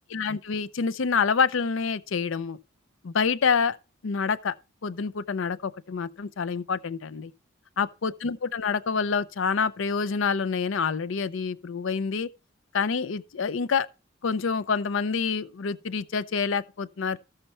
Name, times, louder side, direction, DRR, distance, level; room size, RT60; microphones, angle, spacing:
voice 1, 0.1-2.6 3.0-3.8 4.0-4.5 4.8-7.3 7.8-12.3 12.7-13.9 14.2-17.2, left 5 dB, 75° left, 0.5 m, -27 dB
13.5 x 6.7 x 4.3 m
head